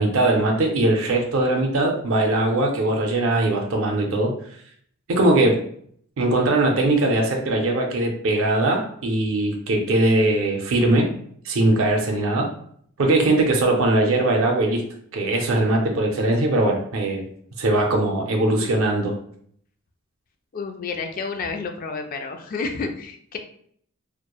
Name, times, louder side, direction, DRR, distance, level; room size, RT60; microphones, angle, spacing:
voice 1, 0.0-4.3 5.1-5.6 6.2-11.1 11.4-12.5 13.0-14.8 15.1-17.3 17.6-19.2, right 2 dB, 65° right, 1 dB, 0.5 m, -20 dB
voice 2, 20.5-23.4, left 4 dB, 40° left, 5 dB, 0.3 m, -30 dB
2.9 x 2.1 x 2.2 m, 0.62 s
head